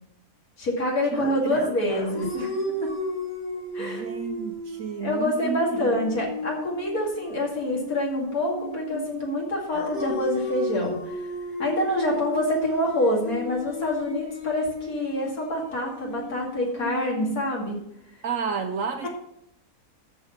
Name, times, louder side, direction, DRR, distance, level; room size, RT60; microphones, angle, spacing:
voice 1, 0.6-2.5 2.8-2.9 3.7-4.0 5.0-11.3 11.6-17.8 19.0-19.1, left 1 dB, 70° left, -2 dB, 3.0 m, -26 dB
sound 1, 1.1-9.2 9.7-17.8, left 1 dB, 55° left, 3.5 m, -34 dB
voice 2, 1.1-1.7 3.8-6.3 18.2-19.1, right 6 dB, 65° right, 7 dB, 1.0 m, -32 dB
13.5 x 4.6 x 5.8 m, 0.77 s
omnidirectional pair, 1.6 m